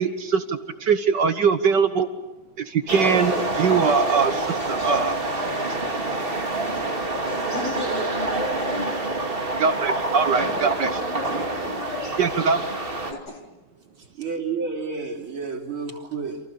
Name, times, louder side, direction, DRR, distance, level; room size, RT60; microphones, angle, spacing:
voice 1, 0.0-2.1 2.6-5.2 9.6-10.9 12.2-12.6, right 6 dB, 60° right, 9 dB, 1.7 m, -22 dB
sound 1, 2.9-13.1, right 2 dB, 25° right, 2.5 m, -27 dB
voice 2, 7.5-9.0 10.5-12.1 13.1-13.5, left 2 dB, 55° left, 1 dB, 4.6 m, -35 dB
voice 3, 14.0-16.4, right 5 dB, 80° right, 2 dB, 4.1 m, -30 dB
28.5 x 28.0 x 6.9 m, 0.97 s
omnidirectional pair, 2.2 m